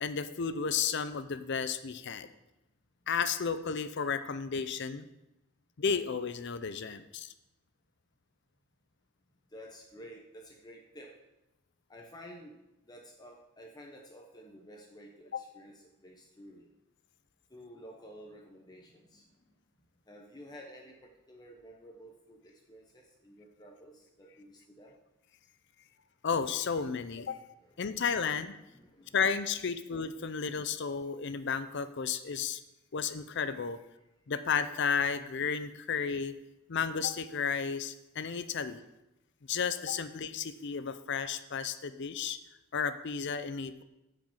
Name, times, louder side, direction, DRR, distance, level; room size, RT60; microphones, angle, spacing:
voice 1, 0.0-2.3 3.1-5.1 5.8-7.3 15.3-15.4 26.2-27.4 27.8-28.6 29.1-32.6 32.9-33.8 34.3-36.4 36.7-38.8 39.5-42.4 42.7-43.8, left 6 dB, 55° left, 12 dB, 0.5 m, -33 dB
voice 2, 9.5-11.2 11.9-12.6 12.8-16.7 17.5-19.6 20.1-24.9 27.3-29.2 40.7-40.8, equal, 20° left, 0 dB, 0.9 m, -52 dB
9.2 x 5.1 x 7.4 m, 0.93 s
head